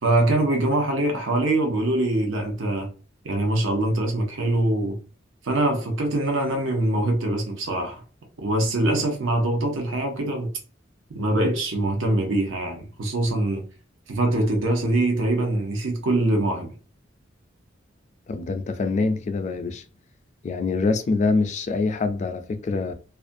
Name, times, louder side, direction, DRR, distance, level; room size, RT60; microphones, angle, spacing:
voice 1, 0.0-2.9 3.2-5.0 5.4-8.0 8.4-10.5 11.1-13.6 14.1-16.7, right 1 dB, 85° right, 0.7 m, -23 dB
voice 2, 18.3-19.8 20.4-22.9, left 3 dB, 35° left, 0.3 m, -25 dB
2.5 x 2.2 x 2.5 m
head